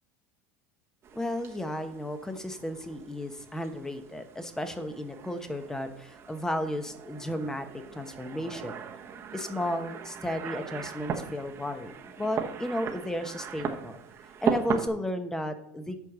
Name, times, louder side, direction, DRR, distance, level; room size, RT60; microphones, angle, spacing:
sound 1, 1.0-14.9, right 7 dB, 35° right, 1.2 m, -38 dB
voice 1, 1.1-8.8 9.3-14.0 14.4-16.0, left 1 dB, 5° left, 8 dB, 1.1 m, -34 dB
8.3 x 4.6 x 6.7 m, 0.72 s
supercardioid pair, 110°, 7 cm